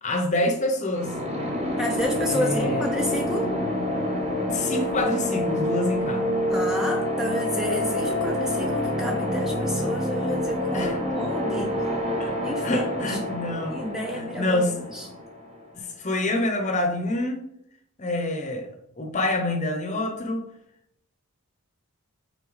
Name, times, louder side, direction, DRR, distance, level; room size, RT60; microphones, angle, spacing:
voice 1, 0.0-1.2 2.3-2.8 4.3-6.3 10.7-11.0 12.2-12.4 12.6-13.8 14.2-15.1 15.7-17.4 18.0-20.5, left 1 dB, 35° left, 3 dB, 0.9 m, -27 dB
sound 1, 0.9-15.6, left 1 dB, 30° right, 1.0 m, -27 dB
voice 2, 1.8-3.5 6.5-11.8 12.4-13.2 13.7-15.1, equal, ahead, 0 dB, 0.6 m, -30 dB
6.0 x 4.0 x 4.0 m, 0.74 s
head